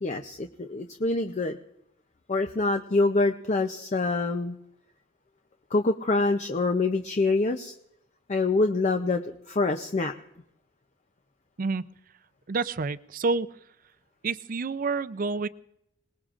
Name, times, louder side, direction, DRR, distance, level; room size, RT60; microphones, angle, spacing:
voice 1, 0.0-1.6 2.3-4.6 5.7-7.7 8.3-10.1, left 3 dB, 35° left, 5 dB, 0.6 m, -25 dB
voice 2, 12.5-13.5 14.2-15.5, right 4 dB, 45° right, 15 dB, 0.5 m, -28 dB
26.0 x 19.0 x 2.5 m, 0.80 s
head